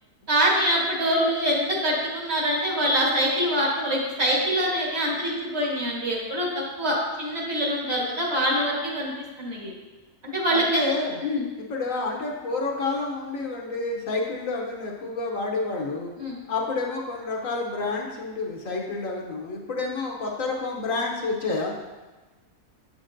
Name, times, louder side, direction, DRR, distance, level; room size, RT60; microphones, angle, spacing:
voice 1, 0.3-6.5 6.8-9.1 9.4-9.7 10.2-10.9 11.2-11.4 16.2-16.4, equal, 45° right, -3 dB, 1.7 m, -24 dB
voice 2, 10.5-11.2 11.6-16.1 16.5-21.7, left 3 dB, 65° left, 0 dB, 1.1 m, -29 dB
7.8 x 6.5 x 2.6 m, 1.2 s
omnidirectional pair, 1.6 m